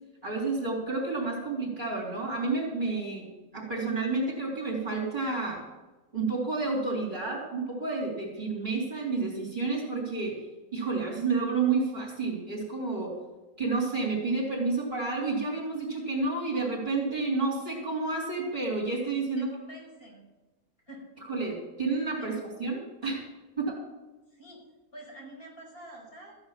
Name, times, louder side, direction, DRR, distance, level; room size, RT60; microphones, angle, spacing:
voice 1, 0.2-5.6 6.1-10.4 10.7-13.1 13.6-19.5 21.3-23.2 23.6-23.8, right 3 dB, 35° right, -4 dB, 3.5 m, -30 dB
voice 2, 19.4-20.2 20.9-21.1 22.2-22.3 24.3-24.6 24.9-26.3, right 1 dB, 40° left, -4 dB, 5.9 m, -46 dB
14.5 x 9.4 x 5.8 m, 1.1 s
omnidirectional pair, 1.5 m